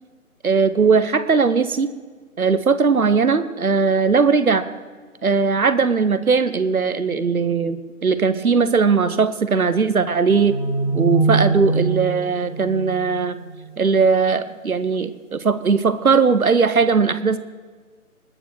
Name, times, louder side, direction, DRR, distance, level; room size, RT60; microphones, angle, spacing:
voice 1, 0.4-1.9 2.4-4.6 5.2-10.6 10.9-13.4 13.8-17.4, right 5 dB, 70° right, 12 dB, 1.0 m, -19 dB
sound 1, 10.2-13.7, right 3 dB, 5° left, 1.5 m, -23 dB
20.5 x 7.0 x 6.4 m, 1.5 s
figure-of-eight pair, 155°, 44 cm